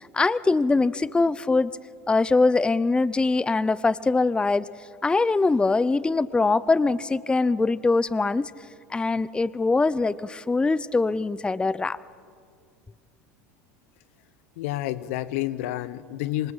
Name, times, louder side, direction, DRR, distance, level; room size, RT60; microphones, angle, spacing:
voice 1, 0.0-1.8 2.1-4.7 5.0-8.5 8.9-12.0, left 3 dB, 10° left, 19 dB, 0.5 m, -22 dB
voice 2, 14.6-16.5, left 15 dB, 70° left, 17 dB, 1.0 m, -29 dB
27.0 x 25.5 x 5.6 m, 2.1 s
hypercardioid pair, 85°, 8 cm